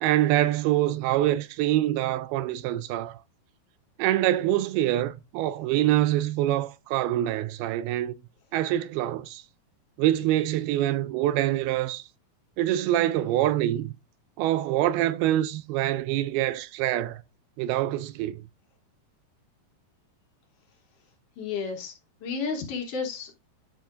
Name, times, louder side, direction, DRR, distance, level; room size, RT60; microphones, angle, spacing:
voice 1, 0.0-3.2 4.0-8.2 8.5-9.4 10.0-12.1 12.6-13.9 14.4-17.2 17.6-18.4, right 13 dB, 85° right, 2.4 m, -25 dB
voice 2, 21.4-21.9 22.2-23.3, left 5 dB, 65° left, 2.3 m, -32 dB
10.5 x 5.6 x 2.5 m
omnidirectional pair, 4.5 m